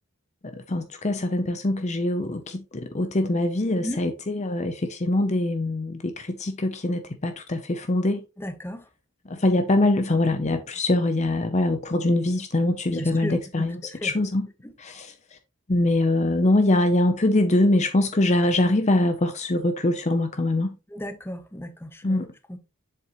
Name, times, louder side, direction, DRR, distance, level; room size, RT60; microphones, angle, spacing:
voice 1, 0.4-8.2 9.3-14.5 14.8-15.4 15.7-20.8 22.0-22.3, left 1 dB, 35° left, 0.7 m, -23 dB
voice 2, 8.4-8.8 12.9-14.1 20.9-22.6, equal, 10° left, 0.9 m, -35 dB
7.4 x 6.9 x 3.1 m
head